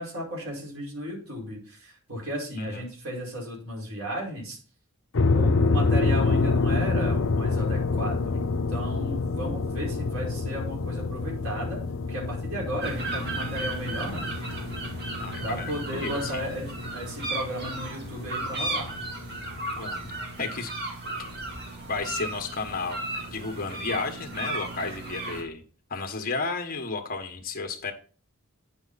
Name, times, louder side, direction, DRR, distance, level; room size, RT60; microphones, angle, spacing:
voice 1, 0.0-4.6 5.3-11.8 12.1-14.2 15.4-18.9, equal, 70° right, -3 dB, 5.0 m, -34 dB
voice 2, 2.5-2.9 15.2-16.4 19.7-20.1 20.4-20.7 21.9-25.6 25.9-27.9, left 4 dB, 40° left, 5 dB, 1.4 m, -33 dB
sound 1, 5.1-20.4, left 3 dB, 60° left, 0.6 m, -28 dB
sound 2, 12.8-25.4, right 2 dB, 50° right, 2.6 m, -35 dB
9.7 x 6.7 x 4.1 m, 0.41 s
head